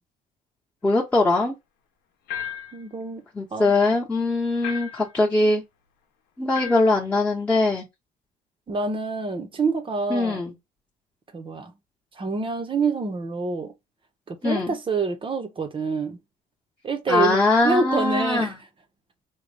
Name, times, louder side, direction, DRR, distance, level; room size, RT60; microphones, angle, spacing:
voice 1, 0.8-1.5 3.3-5.6 6.4-7.8 10.1-10.5 14.4-14.8 17.1-18.5, left 2 dB, 10° left, 1.0 m, -21 dB
sound 1, 2.3-2.8 4.6-5.1 6.5-7.0, left 9 dB, 85° left, 0.8 m, -34 dB
voice 2, 2.7-3.2 3.5-3.7 8.7-10.4 11.3-11.7 12.1-13.7 14.3-16.2 16.8-17.4 17.6-18.6, right 4 dB, 30° right, 0.7 m, -26 dB
3.8 x 2.2 x 3.4 m
cardioid pair, 110°, 17 cm